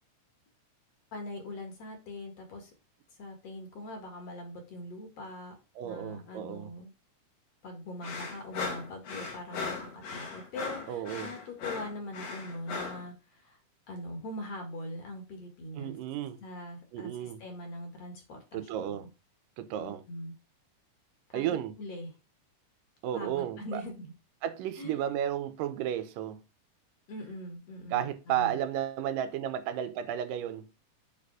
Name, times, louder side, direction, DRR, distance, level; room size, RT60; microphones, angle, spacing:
voice 1, 1.1-2.7 3.2-5.5 5.8-6.9 7.6-13.6 13.9-15.9 16.4-19.1 19.8-20.3 21.3-22.1 23.1-24.1 24.8-25.0 27.1-28.6, left 1 dB, 55° left, 2.7 m, -42 dB
voice 2, 5.8-6.7 10.9-11.3 15.8-16.4 16.9-17.4 18.5-19.1 19.6-20.0 21.3-21.7 23.0-23.8 24.4-26.4 27.9-30.7, right 11 dB, 90° right, 2.4 m, -33 dB
sound 1, 8.0-13.1, left 4 dB, 90° left, 3.8 m, -38 dB
7.4 x 4.3 x 4.8 m
omnidirectional pair, 3.8 m